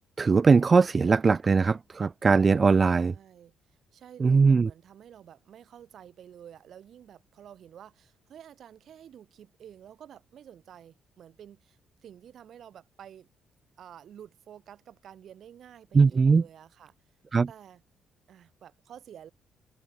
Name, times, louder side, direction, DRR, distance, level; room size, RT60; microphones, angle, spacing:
voice 1, 0.2-3.1 4.2-4.7 15.9-16.4 17.3-17.5, right 4 dB, 35° right, 0.6 m, -20 dB
voice 2, 2.8-3.5 3.9-13.3 13.8-16.9 17.5-17.8 18.3-19.3, right 9 dB, 65° right, 4.2 m, -50 dB
open air
cardioid pair, 90°, 0 cm